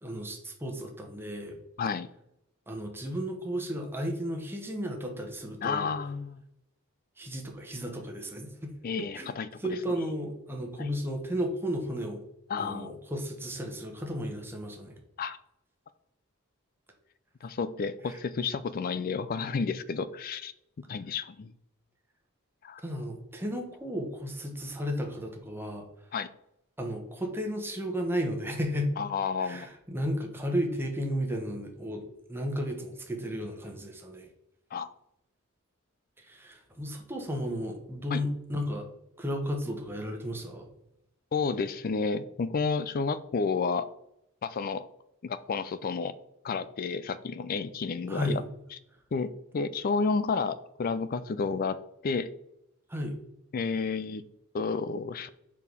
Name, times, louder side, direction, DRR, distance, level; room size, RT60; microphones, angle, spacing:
voice 1, 0.0-1.6 2.7-5.9 7.2-8.7 9.1-9.3 9.6-12.2 12.6-14.9 18.0-18.2 22.8-25.8 26.8-28.9 29.4-32.0 32.3-34.3 36.2-38.9 39.2-40.7 48.1-48.4 52.9-53.1, equal, 10° right, 2 dB, 1.0 m, -33 dB
voice 2, 1.8-2.1 5.6-6.4 8.8-9.5 10.8-10.9 12.5-12.9 15.2-15.4 17.4-20.5 20.9-21.5 22.6-22.8 26.1-26.3 29.0-29.7 34.7-34.9 38.1-38.2 41.3-43.9 44.4-44.8 45.2-46.1 46.4-48.4 49.1-51.8 52.0-52.3 53.5-54.2 54.5-55.3, left 5 dB, 45° left, 14 dB, 0.4 m, -31 dB
5.1 x 4.6 x 5.3 m, 0.81 s
head